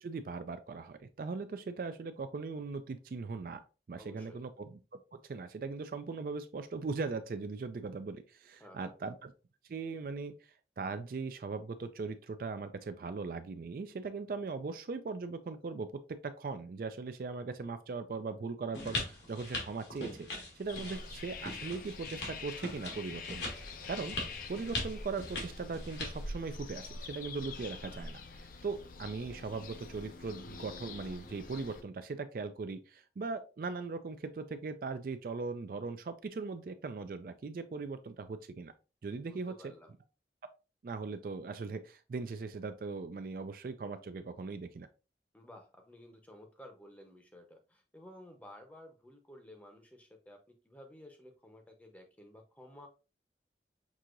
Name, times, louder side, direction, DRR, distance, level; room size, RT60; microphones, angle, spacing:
voice 1, 0.0-3.6 3.9-4.8 5.2-9.3 9.7-15.9 16.2-23.5 23.9-24.2 24.5-38.7 39.0-39.7 40.8-44.9, right 4 dB, 55° right, 0.3 m, -39 dB
voice 2, 4.0-4.4 8.6-8.9 39.2-39.9 45.3-50.4 50.6-52.9, left 1 dB, 10° left, 0.7 m, -54 dB
sound 1, 18.7-26.3, left 2 dB, 80° left, 1.6 m, -41 dB
sound 2, 20.7-31.8, left 3 dB, 50° left, 0.5 m, -45 dB
6.0 x 2.8 x 2.5 m
head